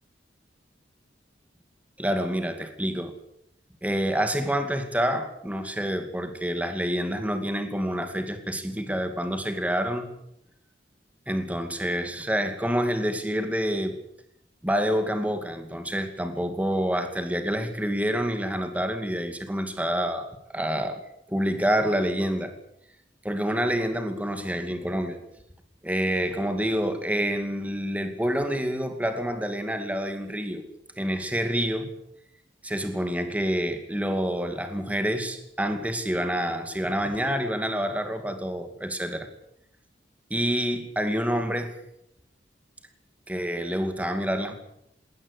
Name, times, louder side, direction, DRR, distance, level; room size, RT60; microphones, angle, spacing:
voice 1, 2.0-3.1 3.8-10.1 11.3-14.0 14.6-21.0 21.3-22.5 23.2-25.2 25.8-30.6 31.0-31.9 32.6-39.3 40.3-41.7 43.3-44.5, equal, 10° right, 7 dB, 2.3 m, -27 dB
20.5 x 18.0 x 8.4 m, 0.76 s
head